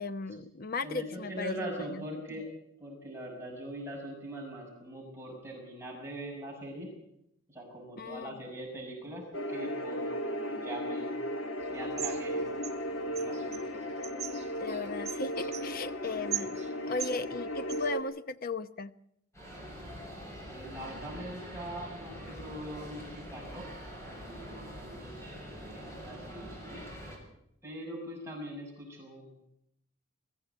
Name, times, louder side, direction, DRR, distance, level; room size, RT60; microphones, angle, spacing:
voice 1, 0.0-2.0 8.0-8.3 14.6-18.9, left 3 dB, 40° left, 12 dB, 0.8 m, -37 dB
voice 2, 0.8-2.5 2.8-6.9 7.5-11.1 11.7-12.5 12.9-13.9 20.5-23.7 24.1-26.9 27.6-29.3, right 1 dB, 10° right, -2 dB, 6.5 m, -42 dB
sound 1, 9.3-18.0, equal, 60° left, 1.9 m, -35 dB
sound 2, 11.6-17.9, right 11 dB, 30° right, 1.0 m, -42 dB
sound 3, 19.3-27.2, equal, 15° left, 6.5 m, -44 dB
22.0 x 15.5 x 8.2 m, 0.77 s
head